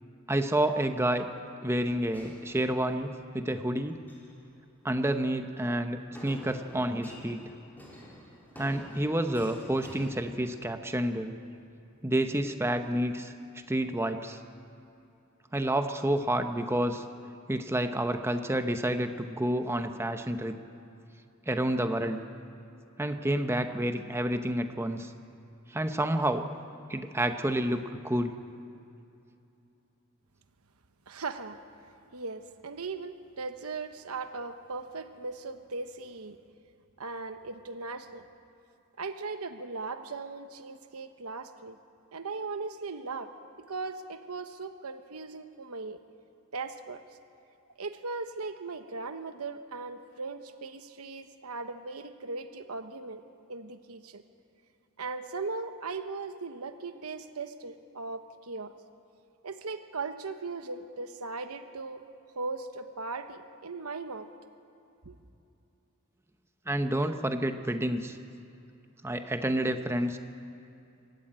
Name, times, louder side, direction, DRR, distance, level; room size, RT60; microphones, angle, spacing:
voice 1, 0.3-1.3 1.6-4.0 4.8-7.4 8.6-11.3 12.0-13.3 13.7-14.4 15.5-17.0 17.5-20.6 21.5-22.2 23.0-25.1 25.7-26.5 26.9-28.3 66.7-68.2 69.0-70.2, right 1 dB, 10° right, 7 dB, 0.8 m, -29 dB
sound 1, 2.1-3.2 3.9-4.4 6.2-11.0, equal, 10° left, 3.9 m, -49 dB
voice 2, 31.1-31.6 32.1-36.4 37.0-38.2 39.0-41.8 42.1-43.3 43.7-46.0 46.5-47.0 47.8-53.2 53.5-54.2 55.0-58.7 59.4-62.1 62.3-64.3 65.0-65.2, right 3 dB, 90° right, 8 dB, 1.1 m, -38 dB
24.5 x 13.0 x 8.9 m, 2.7 s
head